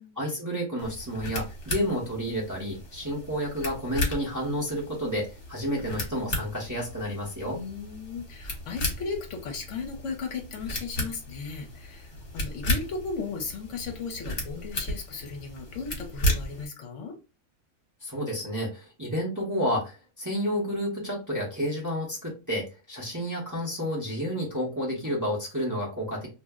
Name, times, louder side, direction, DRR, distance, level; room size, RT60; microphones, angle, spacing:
voice 1, 0.2-7.6 18.0-26.3, equal, 20° right, -4 dB, 0.7 m, -30 dB
sound 1, 0.8-16.7, left 1 dB, 45° left, 1.1 m, -34 dB
voice 2, 7.5-17.2, left 5 dB, 70° left, 4 dB, 0.9 m, -36 dB
2.5 x 2.0 x 3.4 m, 0.30 s
omnidirectional pair, 1.4 m